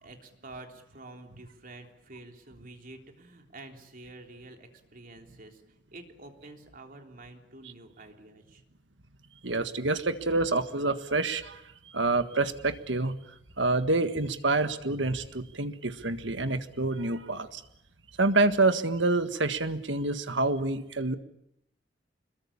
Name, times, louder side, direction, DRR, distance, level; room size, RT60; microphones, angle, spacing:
voice 1, 0.0-8.6, right 2 dB, 50° right, 4 dB, 3.5 m, -48 dB
voice 2, 9.4-11.6 11.9-13.1 13.6-17.6 18.2-21.2, right 2 dB, 75° right, 10 dB, 1.7 m, -27 dB
26.0 x 21.5 x 8.6 m, 0.78 s
head